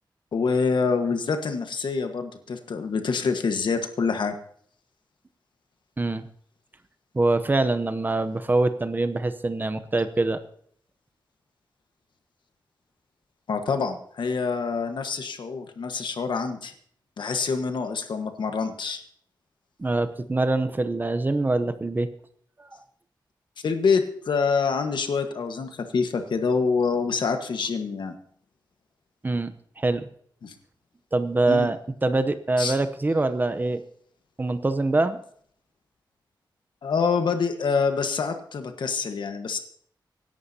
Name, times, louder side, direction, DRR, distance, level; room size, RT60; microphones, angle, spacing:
voice 1, 0.3-4.3 13.5-16.7 17.2-19.0 23.6-28.2 30.4-30.5 31.5-31.7 32.6-32.8 36.8-39.6, left 5 dB, 75° left, 6 dB, 1.4 m, -26 dB
voice 2, 6.0-6.3 7.1-10.4 19.8-22.1 22.6-22.7 29.2-30.1 31.1-33.8 34.4-35.2, right 2 dB, 25° right, 11 dB, 0.7 m, -24 dB
24.5 x 11.5 x 2.8 m, 0.63 s
wide cardioid pair, 135°, 8 cm